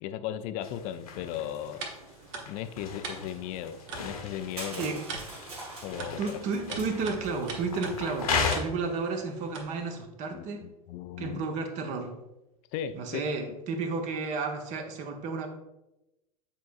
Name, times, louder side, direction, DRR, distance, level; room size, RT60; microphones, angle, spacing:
voice 1, 0.0-1.9 2.5-5.0 5.8-6.2 6.7-6.8 10.3-11.4 12.7-13.2, left 11 dB, 40° left, 12 dB, 0.5 m, -37 dB
sound 1, 0.6-8.6, left 5 dB, 70° left, 1.1 m, -36 dB
sound 2, 1.2-10.0, right 4 dB, 55° right, 1.2 m, -44 dB
Crushing, 4.6-7.5, right 2 dB, 75° right, 1.8 m, -43 dB
voice 2, 6.2-10.7 11.2-12.1 12.9-15.5, right 4 dB, 40° right, 5 dB, 0.9 m, -32 dB
8.2 x 4.6 x 2.5 m, 0.95 s
figure-of-eight pair, 85°, 20 cm